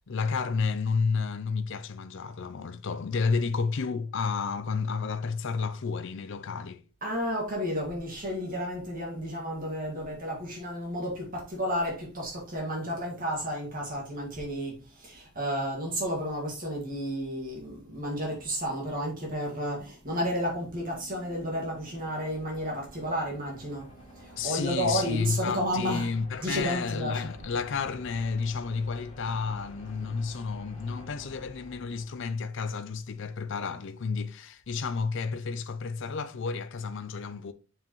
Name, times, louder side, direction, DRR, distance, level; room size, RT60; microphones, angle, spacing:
voice 1, 0.1-6.8 24.4-37.5, left 5 dB, 55° left, 0.5 m, -31 dB
voice 2, 7.0-26.1 26.4-27.2, equal, 40° right, 2.0 m, -32 dB
sound 1, 19.9-32.7, right 1 dB, 25° left, 2.1 m, -51 dB
7.4 x 4.9 x 3.1 m
head